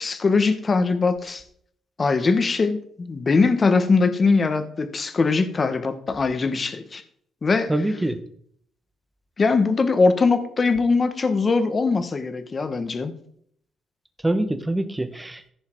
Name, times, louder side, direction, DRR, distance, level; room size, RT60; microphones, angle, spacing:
voice 1, 0.0-1.4 2.0-7.0 7.4-7.7 9.4-13.1, left 4 dB, 35° left, 1.2 m, -21 dB
voice 2, 7.7-8.2 14.2-15.5, right 1 dB, 10° right, 1.2 m, -24 dB
14.5 x 5.6 x 4.6 m
cardioid pair, 90°, 0 cm